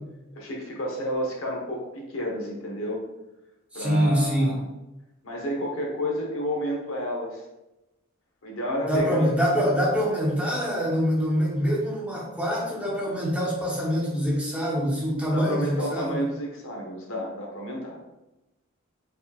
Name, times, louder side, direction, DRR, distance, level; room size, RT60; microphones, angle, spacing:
voice 1, 0.3-3.0 3.7-4.6 5.2-7.4 8.4-9.3 15.3-18.0, equal, 65° left, -1 dB, 1.0 m, -30 dB
voice 2, 3.7-4.6 8.8-16.2, equal, 5° right, -6 dB, 1.1 m, -25 dB
4.8 x 3.8 x 2.4 m, 0.98 s
head